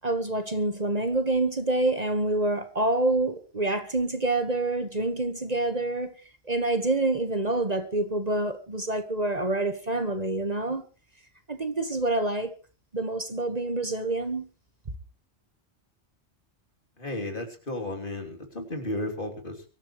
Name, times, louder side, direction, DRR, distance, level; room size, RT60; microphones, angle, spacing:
voice 1, 0.0-6.1 6.5-10.8 11.5-12.5 12.9-14.5, right 2 dB, 35° right, 1.6 m, -27 dB
voice 2, 17.0-19.6, left 1 dB, 50° left, 3.4 m, -34 dB
24.0 x 14.0 x 3.2 m
omnidirectional pair, 1.1 m